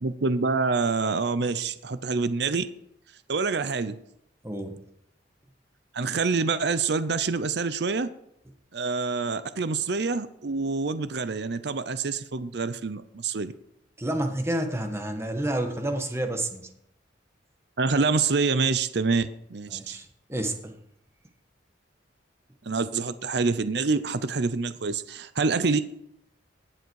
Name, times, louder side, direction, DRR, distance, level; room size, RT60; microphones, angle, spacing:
voice 1, 0.0-2.6 3.3-4.0 5.9-8.1 8.7-13.5 17.8-20.0 22.6-25.8, right 4 dB, 65° right, 13 dB, 0.6 m, -26 dB
voice 2, 4.4-4.7 14.0-16.7 19.7-20.7, right 1 dB, 15° right, 5 dB, 1.5 m, -29 dB
18.5 x 7.7 x 4.7 m, 0.78 s
head